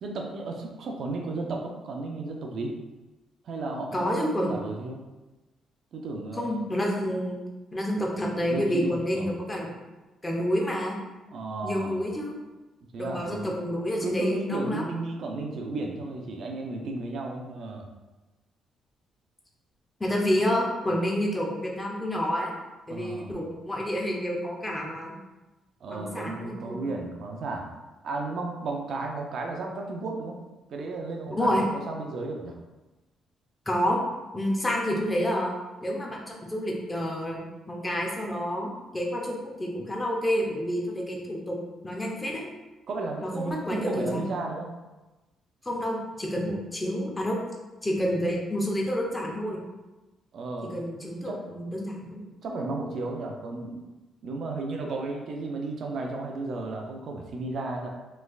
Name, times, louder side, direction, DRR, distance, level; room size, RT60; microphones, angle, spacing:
voice 1, 0.0-2.8 3.4-5.0 5.9-6.6 8.5-9.3 11.3-12.0 12.9-13.5 14.0-17.9 22.9-23.3 25.8-27.7 28.0-30.4 30.7-32.6 42.9-44.7 50.3-50.8 51.2-51.4 52.4-53.8 54.2-57.9, right 3 dB, 65° right, 1 dB, 0.5 m, -34 dB
voice 2, 3.9-4.5 6.3-7.4 7.7-9.7 10.2-11.0 11.6-12.4 13.0-14.9 20.0-22.5 22.9-25.1 25.9-26.9 31.3-31.7 33.7-34.0 34.3-35.5 35.8-41.6 41.8-42.4 43.2-44.3 45.6-47.4 47.8-49.6 50.7-52.2, equal, 15° left, -1 dB, 0.7 m, -29 dB
3.2 x 3.1 x 2.4 m, 1.1 s
cardioid pair, 90°, 0 cm